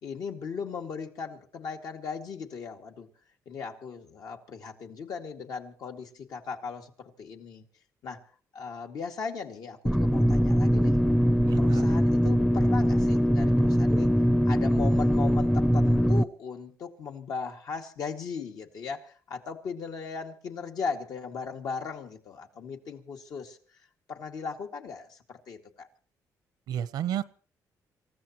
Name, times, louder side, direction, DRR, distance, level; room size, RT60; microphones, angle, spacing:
voice 1, 0.0-3.1 3.5-7.6 8.0-8.3 8.5-11.0 11.6-14.1 14.5-23.6 24.1-25.9, left 5 dB, 70° left, 2.4 m, -38 dB
sound 1, 9.9-16.2, equal, ahead, 0.6 m, -22 dB
voice 2, 11.4-11.8 26.7-27.2, right 10 dB, 90° right, 0.9 m, -31 dB
28.0 x 15.0 x 3.1 m
cardioid pair, 105°, 7 cm